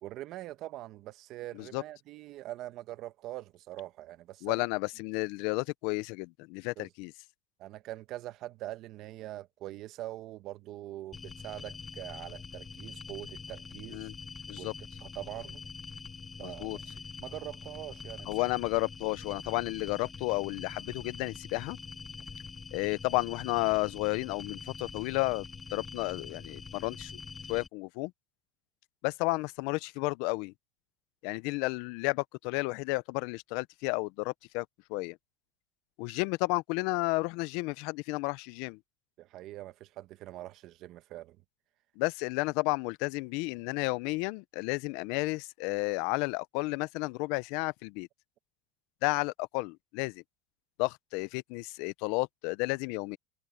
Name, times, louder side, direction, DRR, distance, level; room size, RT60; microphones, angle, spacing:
voice 1, 0.0-4.7 6.8-6.9 7.6-14.1 14.6-14.7 15.0-15.6 16.4-16.9 17.2-18.3 39.2-41.4, right 15 dB, 55° right, 1.1 m, -43 dB
voice 2, 4.4-7.1 13.9-14.1 14.5-14.7 16.4-16.8 18.3-21.8 22.7-25.5 25.7-27.2 27.5-28.1 29.0-30.5 31.2-35.2 36.0-38.8 42.0-48.1 49.0-50.2 50.8-53.2, left 25 dB, 75° left, 0.5 m, -32 dB
sound 1, 11.1-27.7, left 4 dB, 20° left, 2.4 m, -44 dB
supercardioid pair, 125°, 0 cm